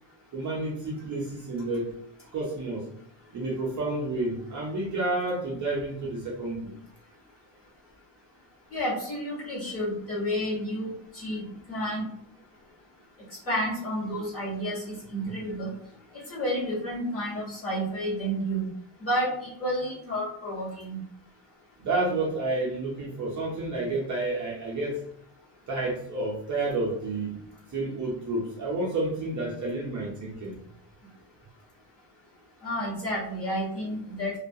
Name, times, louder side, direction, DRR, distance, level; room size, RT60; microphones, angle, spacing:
voice 1, 0.3-1.9 2.3-2.9 3.3-6.7 15.2-15.3 21.8-25.0 25.7-27.4 27.7-30.6, right 2 dB, 40° right, -4 dB, 0.5 m, -30 dB
voice 2, 8.7-11.4 11.7-12.0 13.5-15.7 16.3-18.7 19.0-19.3 19.6-21.0 32.6-34.4, equal, 30° left, -8 dB, 1.1 m, -30 dB
2.3 x 2.2 x 2.6 m, 0.68 s
cardioid pair, 175°, 49 cm